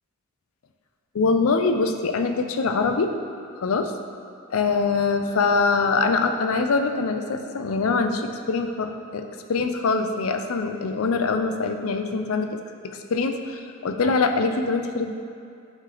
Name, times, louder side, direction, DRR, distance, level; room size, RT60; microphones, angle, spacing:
voice 1, 1.1-3.1 3.6-3.9 4.5-12.6 12.8-15.1, left 4 dB, 85° left, 6 dB, 0.5 m, -23 dB
9.6 x 3.2 x 3.8 m, 2.4 s
head